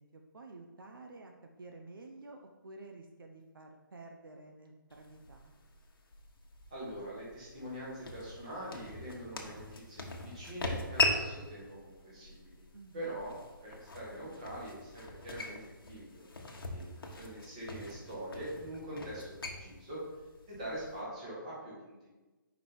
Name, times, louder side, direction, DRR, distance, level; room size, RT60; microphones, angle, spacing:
voice 1, 0.0-1.3 1.6-5.5 12.7-13.1, right 2 dB, 75° right, 3 dB, 0.8 m, -51 dB
sound 1, 4.9-21.0, left 2 dB, 90° left, 1.2 m, -40 dB
voice 2, 6.7-12.6 12.9-13.3 13.6-20.0 20.5-22.1, right 1 dB, 20° right, -7 dB, 1.7 m, -44 dB
5.2 x 4.9 x 4.4 m, 1.2 s
hypercardioid pair, 180°, 12 cm